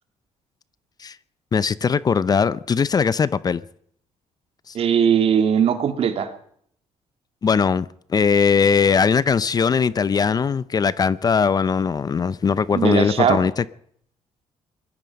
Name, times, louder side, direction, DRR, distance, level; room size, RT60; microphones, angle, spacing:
voice 1, 1.5-3.6 4.7-4.8 7.4-13.6, left 6 dB, 35° left, 0.6 m, -20 dB
voice 2, 4.7-6.3 12.7-13.4, right 8 dB, 55° right, 2.1 m, -19 dB
20.5 x 13.0 x 5.3 m
cardioid pair, 100°, 12 cm